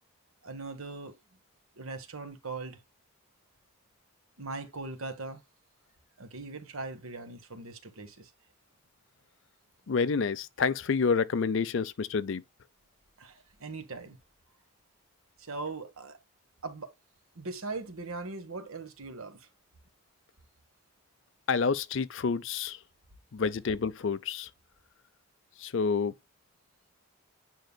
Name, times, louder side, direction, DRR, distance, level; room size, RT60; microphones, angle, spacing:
voice 1, 0.4-1.1 1.8-2.8 4.4-5.4 6.2-8.3 13.2-14.2 15.4-16.2 16.6-16.9 17.3-19.5, right 3 dB, 75° right, 1.3 m, -40 dB
voice 2, 9.9-12.4 21.5-22.8 23.3-24.5 25.6-26.1, left 5 dB, 55° left, 0.5 m, -28 dB
9.2 x 5.4 x 2.2 m
head